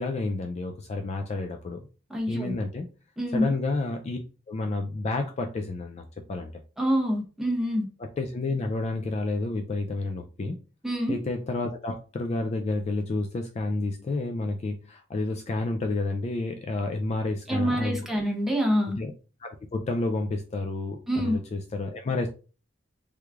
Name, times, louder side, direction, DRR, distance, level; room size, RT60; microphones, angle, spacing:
voice 1, 0.0-1.8 2.3-2.9 3.3-4.2 4.5-6.5 8.0-10.6 11.1-18.1 19.0-19.1 19.4-22.3, left 2 dB, 35° left, 4 dB, 0.3 m, -30 dB
voice 2, 2.1-2.5 3.2-3.5 6.8-7.9 10.8-11.1 17.5-18.9 21.1-21.4, equal, ahead, -1 dB, 0.9 m, -26 dB
3.5 x 3.1 x 2.3 m, 0.35 s
head